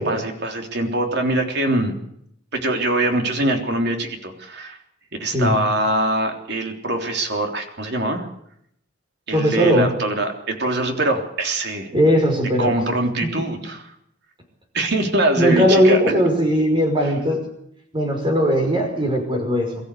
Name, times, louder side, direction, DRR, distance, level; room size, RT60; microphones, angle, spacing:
voice 1, 0.0-1.9 2.5-4.8 5.2-8.3 9.3-11.9 12.6-13.8 14.7-16.0, right 1 dB, 55° right, 3 dB, 3.5 m, -23 dB
voice 2, 9.3-9.9 11.9-12.8 13.2-13.3 15.4-17.4 17.9-19.9, equal, 25° right, 3 dB, 5.6 m, -19 dB
23.0 x 14.0 x 8.5 m, 0.73 s
head